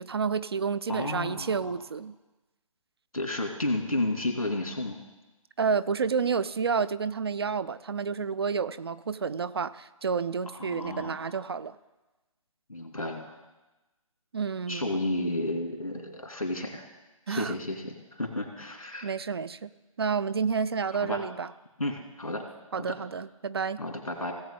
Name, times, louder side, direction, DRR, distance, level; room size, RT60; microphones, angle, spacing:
voice 1, 0.0-2.1 5.6-11.8 14.3-14.9 17.3-17.5 19.0-19.7 20.0-21.5 22.7-23.8, right 5 dB, 45° right, 15 dB, 0.4 m, -30 dB
voice 2, 0.9-1.7 3.1-5.0 10.5-11.4 12.7-13.3 14.7-16.9 17.3-19.1 21.0-21.2 21.8-22.5 22.8-23.0 23.8-24.3, left 1 dB, 85° left, 3 dB, 2.5 m, -32 dB
17.5 x 7.7 x 3.8 m, 1.1 s
figure-of-eight pair, 145°, 18 cm